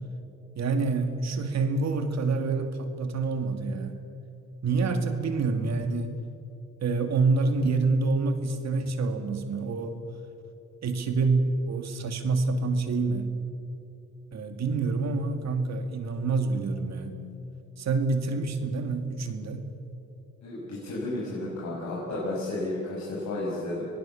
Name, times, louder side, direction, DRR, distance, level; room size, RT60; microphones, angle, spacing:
voice 1, 0.6-4.0 4.6-6.2 6.8-10.0 10.8-13.3 14.3-17.2 17.8-19.6, right 3 dB, 60° right, 7 dB, 2.5 m, -27 dB
voice 2, 20.4-23.9, left 2 dB, 65° left, -7 dB, 6.8 m, -32 dB
25.5 x 19.0 x 7.3 m, 2.8 s
cardioid pair, 90°, 30 cm